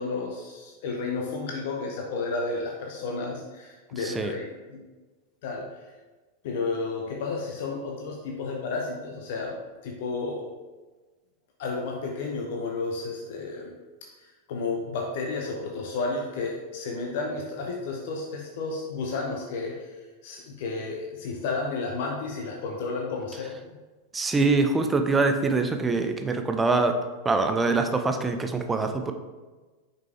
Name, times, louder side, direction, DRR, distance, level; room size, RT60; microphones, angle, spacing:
voice 1, 0.0-4.8 5.4-5.7 6.4-9.6 9.8-10.5 11.6-13.7 14.2-19.9 20.2-23.8, left 3 dB, 55° left, 0 dB, 0.7 m, -32 dB
voice 2, 4.0-4.3 24.1-27.0 27.2-29.1, right 3 dB, 15° right, 6 dB, 0.6 m, -24 dB
6.5 x 5.2 x 3.3 m, 1.3 s
figure-of-eight pair, 90°, 0 cm